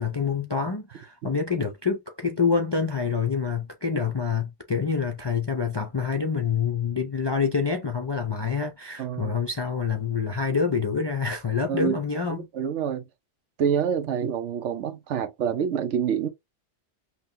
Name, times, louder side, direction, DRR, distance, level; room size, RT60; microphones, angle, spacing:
voice 1, 0.0-12.5, left 5 dB, 40° left, 0.3 m, -27 dB
voice 2, 9.0-9.3 11.7-12.0 12.5-13.0 13.6-16.3, right 7 dB, 75° right, 1.0 m, -26 dB
5.5 x 2.2 x 2.7 m
omnidirectional pair, 1.2 m